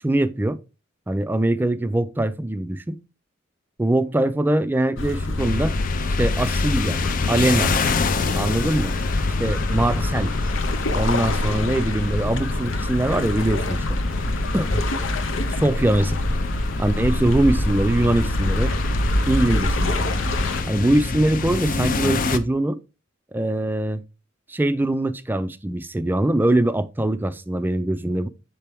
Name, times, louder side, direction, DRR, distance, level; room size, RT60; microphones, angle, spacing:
voice 1, 0.0-0.6 1.1-3.0 3.8-5.8 6.2-7.8 8.3-8.9 9.4-10.3 10.9-14.0 14.5-14.8 15.6-16.2 16.8-18.8 19.3-20.1 20.6-22.8 23.3-24.0 24.5-28.3, right 1 dB, 10° right, 0.4 m, -22 dB
sound 1, 5.0-20.6, left 1 dB, 80° left, 0.7 m, -25 dB
sound 2, 5.4-22.4, left 4 dB, 45° left, 0.5 m, -28 dB
6.8 x 4.4 x 3.4 m
head